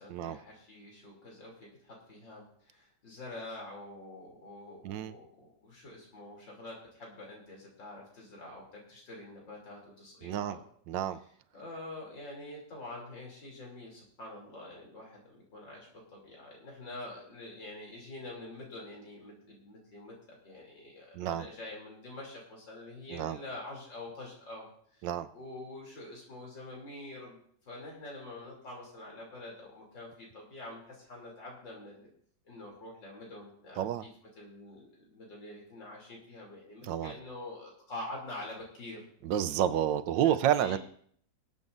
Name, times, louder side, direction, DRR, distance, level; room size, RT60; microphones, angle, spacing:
voice 1, 0.0-10.6 11.2-25.1 25.3-27.4 27.6-32.1 32.5-34.1 34.4-39.0 40.2-40.8, left 2 dB, 80° left, -2 dB, 3.8 m, -46 dB
voice 2, 10.2-10.6 10.9-11.2 21.1-21.5 23.1-23.4 25.0-25.3 33.8-34.0 36.9-37.1 39.2-40.8, right 10 dB, 85° right, 13 dB, 1.3 m, -29 dB
24.0 x 8.2 x 2.6 m, 0.62 s
omnidirectional pair, 2.0 m